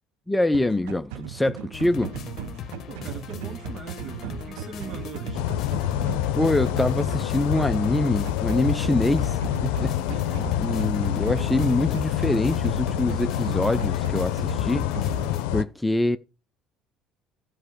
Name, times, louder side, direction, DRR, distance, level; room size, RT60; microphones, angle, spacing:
voice 1, 0.3-2.1 6.3-10.0 10.6-14.9 15.5-16.2, left 1 dB, 10° left, 0.5 m, -25 dB
sound 1, 0.5-15.3, right 12 dB, 85° right, 0.6 m, -37 dB
sound 2, 1.7-15.4, left 9 dB, 55° left, 0.8 m, -39 dB
voice 2, 2.9-5.5 10.0-10.6, right 5 dB, 50° right, 1.8 m, -40 dB
sound 3, 5.3-15.6, left 12 dB, 85° left, 0.6 m, -27 dB
12.5 x 5.6 x 5.0 m
supercardioid pair, 95°, 0 cm